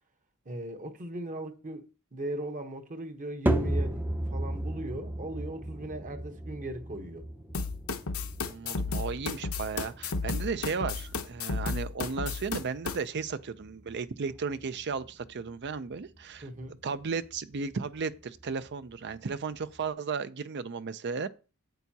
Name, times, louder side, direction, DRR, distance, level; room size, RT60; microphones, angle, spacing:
voice 1, 0.4-4.0 4.3-7.3 16.4-16.7, right 1 dB, 35° right, 1.0 m, -38 dB
sound 1, 3.5-19.9, right 1 dB, 10° right, 0.6 m, -37 dB
sound 2, 7.5-13.0, left 4 dB, 70° left, 0.9 m, -32 dB
voice 2, 8.5-16.5 16.8-21.3, right 5 dB, 50° right, 0.5 m, -35 dB
9.1 x 8.1 x 2.8 m
head